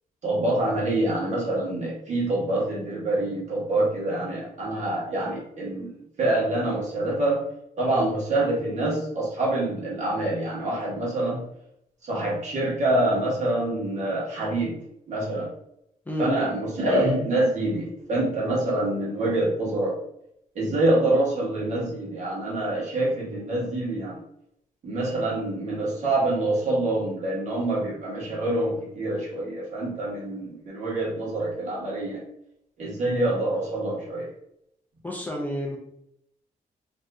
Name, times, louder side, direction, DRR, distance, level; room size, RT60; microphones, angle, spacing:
voice 1, 0.2-7.4 7.8-11.5 12.1-14.8 15.1-15.5 16.2-19.9 20.5-24.2 24.8-32.2 32.8-34.3, right 1 dB, 55° right, -5 dB, 1.2 m, -26 dB
voice 2, 35.0-35.8, equal, 10° left, -2 dB, 0.4 m, -29 dB
2.6 x 2.5 x 3.3 m, 0.76 s
wide cardioid pair, 175°, 14 cm